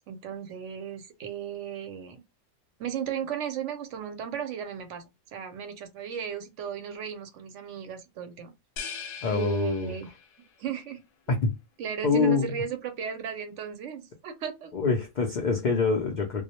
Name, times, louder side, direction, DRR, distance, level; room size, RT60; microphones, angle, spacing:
voice 1, 0.1-2.2 2.8-8.5 9.3-10.1 10.6-11.0 11.8-14.7, right 8 dB, 70° right, 0.8 m, -35 dB
sound 1, 8.8-10.5, left 6 dB, 65° left, 0.8 m, -40 dB
voice 2, 9.2-10.0 11.3-11.5 12.0-12.5 14.7-16.4, left 4 dB, 85° left, 0.4 m, -25 dB
2.2 x 2.0 x 2.8 m
omnidirectional pair, 1.4 m